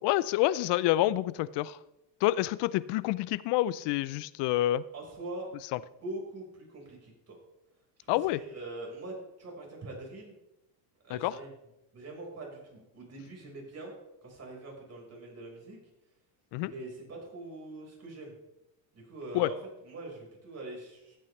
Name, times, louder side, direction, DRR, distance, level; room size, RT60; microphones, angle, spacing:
voice 1, 0.0-1.8 2.2-4.8 5.7-5.8 8.1-8.4 11.1-11.4 16.5-16.7 19.3-19.5, left 15 dB, 60° left, 19 dB, 0.6 m, -28 dB
voice 2, 4.9-5.5 6.0-7.4 8.0-10.4 11.0-11.5 11.9-13.9 14.2-15.8 16.6-18.3 18.9-19.6 19.8-21.2, right 2 dB, 30° right, -1 dB, 4.8 m, -43 dB
14.5 x 8.7 x 3.3 m, 0.90 s
supercardioid pair, 100°, 49 cm